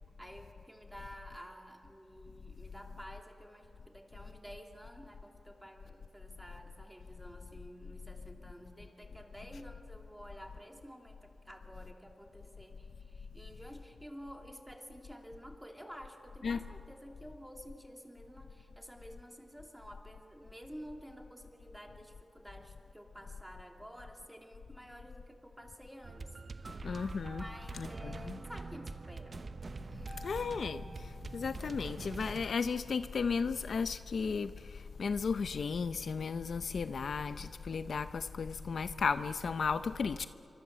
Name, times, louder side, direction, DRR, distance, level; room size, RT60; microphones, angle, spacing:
voice 1, 0.2-27.0 27.3-29.4 29.9-30.3, equal, 5° right, 3 dB, 2.8 m, -51 dB
sound 1, 26.0-32.5, right 3 dB, 45° right, 0.9 m, -45 dB
voice 2, 26.8-27.4 27.7-28.4 30.2-40.3, left 5 dB, 65° left, 12 dB, 0.7 m, -35 dB
27.5 x 25.0 x 7.5 m, 2.5 s
wide cardioid pair, 110°, 0 cm